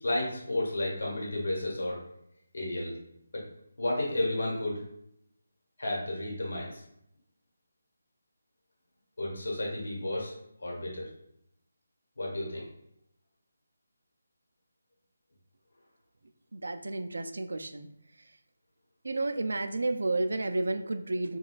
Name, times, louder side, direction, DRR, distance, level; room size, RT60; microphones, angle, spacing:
voice 1, 0.0-2.0 2.5-2.9 3.3-3.4 3.8-4.8 5.8-6.8 9.2-10.3 10.6-11.1 12.2-12.7, left 1 dB, 70° left, -2 dB, 1.3 m, -32 dB
voice 2, 16.5-17.9 19.0-21.4, right 2 dB, 80° right, 8 dB, 0.3 m, -31 dB
4.0 x 2.3 x 2.3 m, 0.75 s
figure-of-eight pair, 175°, 0 cm